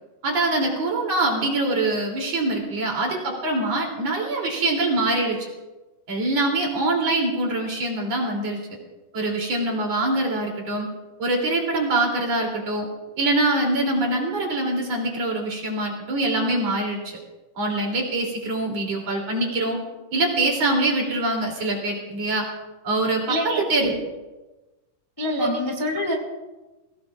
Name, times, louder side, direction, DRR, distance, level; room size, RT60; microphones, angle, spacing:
voice 1, 0.2-5.4 6.1-8.6 9.1-10.9 11.2-12.9 13.2-17.2 17.6-19.8 20.1-22.4 22.8-24.0 25.4-25.5, right 2 dB, 50° right, -1 dB, 4.1 m, -24 dB
voice 2, 23.3-23.6 25.2-26.1, left 1 dB, 10° left, 0 dB, 1.3 m, -26 dB
22.0 x 17.5 x 2.5 m, 1.1 s
omnidirectional pair, 3.9 m